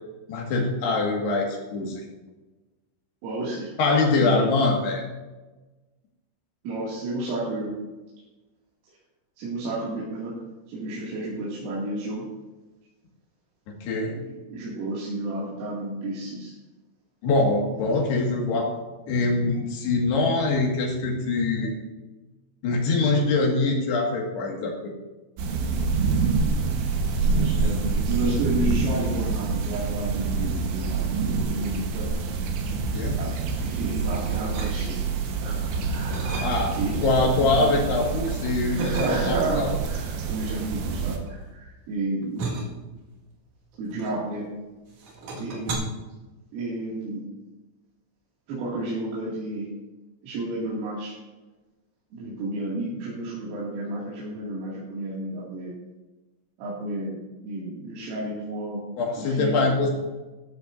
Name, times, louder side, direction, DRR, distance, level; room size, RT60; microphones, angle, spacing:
voice 1, 0.3-2.0 3.8-5.0 13.7-14.1 17.2-18.8 19.1-21.7 22.6-24.9 32.7-33.2 36.4-36.8 37.0-39.8 45.3-45.5 59.0-59.9, left 3 dB, 60° left, -1 dB, 3.8 m, -24 dB
voice 2, 3.2-3.7 4.2-4.5 6.7-7.8 9.4-10.3 10.7-12.3 14.5-16.5 27.2-32.1 33.1-35.0 35.4-36.9 37.4-37.7 38.7-42.7 43.8-44.5 45.4-45.9 46.5-47.3 48.5-49.7 50.2-51.2 52.1-55.7 56.6-57.2 57.4-58.8 59.2-59.7, right 2 dB, 90° right, -8 dB, 5.2 m, -31 dB
sound 1, 25.4-41.2, right 4 dB, 70° right, 3.5 m, -27 dB
sound 2, 34.5-35.2 35.6-37.0 37.4-38.2 38.8-39.6 40.4-44.6 44.9-45.7, right 3 dB, 55° right, 2.8 m, -37 dB
13.5 x 13.5 x 2.7 m, 1.2 s
omnidirectional pair, 5.7 m